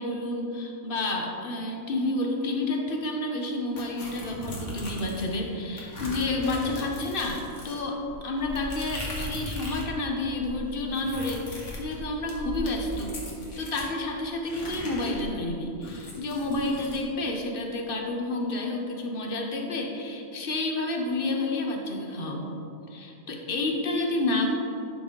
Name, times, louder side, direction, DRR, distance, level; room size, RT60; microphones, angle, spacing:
voice 1, 0.0-13.2 13.6-22.6 22.9-24.6, left 2 dB, 45° left, 1 dB, 1.1 m, -30 dB
sound 1, 3.8-5.4 5.8-9.9 10.2-13.9 14.4-17.0, left 1 dB, 65° left, 1.7 m, -38 dB
11.0 x 5.2 x 3.8 m, 2.8 s
omnidirectional pair, 1.4 m